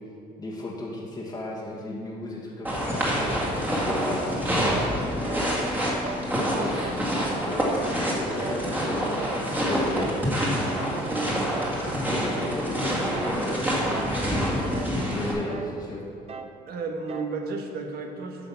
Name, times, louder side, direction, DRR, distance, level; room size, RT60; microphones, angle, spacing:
voice 1, 0.4-5.7 6.2-7.0 7.4-10.2 12.1-16.0, left 1 dB, 20° left, -5 dB, 1.4 m, -35 dB
sound 1, 2.6-15.3, equal, 10° right, 2.0 m, -27 dB
sound 2, 5.2-5.5 6.0-6.3 6.8-7.1 7.6-7.9 8.4-8.7 9.2-9.5 10.0-10.3 10.8-11.0 11.5-11.9 12.3-12.7 13.1-13.4 13.9-14.3 14.7-15.0 15.5-15.8 16.3-16.6 17.1-17.4, right 4 dB, 35° right, 0.7 m, -39 dB
voice 2, 11.1-12.4 16.7-18.5, right 4 dB, 65° right, 3 dB, 1.2 m, -34 dB
9.1 x 5.7 x 5.7 m, 2.4 s
cardioid pair, 110°, 17 cm